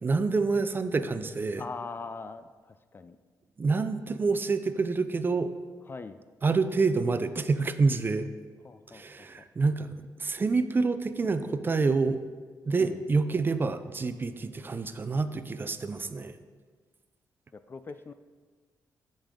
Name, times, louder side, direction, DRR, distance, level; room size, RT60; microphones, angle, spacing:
voice 1, 0.0-1.6 3.6-5.5 6.4-8.3 8.9-9.9 10.2-12.2 12.7-16.4, right 4 dB, 30° right, 11 dB, 0.5 m, -27 dB
voice 2, 1.6-3.2 5.9-6.2 8.6-9.3 12.8-13.0 16.0-16.1 17.5-18.1, left 4 dB, 30° left, 11 dB, 0.4 m, -41 dB
14.5 x 5.3 x 3.7 m, 1.5 s
cardioid pair, 105°, 7 cm